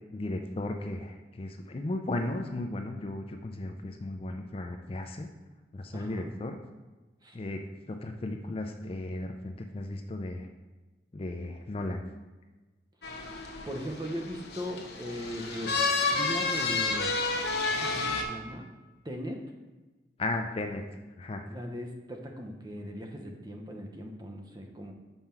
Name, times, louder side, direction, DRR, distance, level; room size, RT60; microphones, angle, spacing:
voice 1, 0.1-5.3 5.7-6.6 7.3-7.6 7.9-10.5 11.1-12.0 20.2-20.8 21.2-21.4, left 2 dB, 30° left, 5 dB, 0.4 m, -35 dB
voice 2, 5.9-6.3 7.2-7.4 13.7-15.8 16.1-17.1 17.6-18.7 19.0-19.4 21.5-24.9, equal, 20° right, 3 dB, 0.7 m, -39 dB
sound 1, 13.0-18.2, left 3 dB, 60° left, 0.9 m, -30 dB
5.6 x 4.5 x 5.7 m, 1.2 s
head